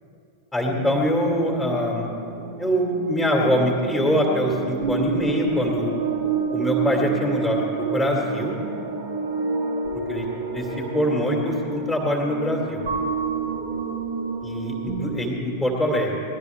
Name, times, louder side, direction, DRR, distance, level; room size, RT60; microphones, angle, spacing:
voice 1, 0.5-2.1 2.6-5.9 6.5-8.5 9.9-10.3 10.5-10.7 10.9-12.9 14.4-16.1, equal, ahead, -3 dB, 2.2 m, -23 dB
sound 1, 0.6-15.1, right 5 dB, 65° right, 1.6 m, -29 dB
19.0 x 12.0 x 3.5 m, 2.7 s
figure-of-eight pair, 90°, 0 cm